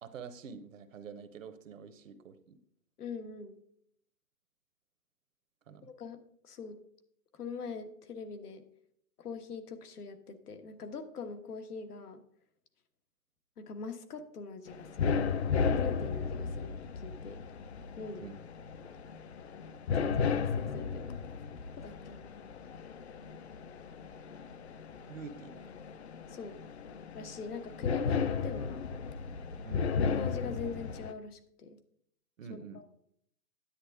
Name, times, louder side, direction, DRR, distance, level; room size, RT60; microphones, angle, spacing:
voice 1, 0.0-2.6 5.7-5.9 18.2-18.4 25.1-25.7 29.6-29.9 32.4-32.8, right 6 dB, 55° right, 11 dB, 1.0 m, -46 dB
voice 2, 3.0-3.6 5.8-6.2 6.4-6.8 7.3-8.6 9.2-12.2 13.6-15.2 15.6-17.4 18.0-18.3 18.8-18.9 19.9-21.1 21.8-22.4 26.3-26.6 27.1-28.8 29.9-31.8 32.7-32.8, left 5 dB, 75° left, 7 dB, 1.4 m, -42 dB
sound 1, 14.7-31.1, left 5 dB, 45° left, 0.6 m, -35 dB
10.0 x 8.7 x 3.6 m, 0.69 s
hypercardioid pair, 160°, 46 cm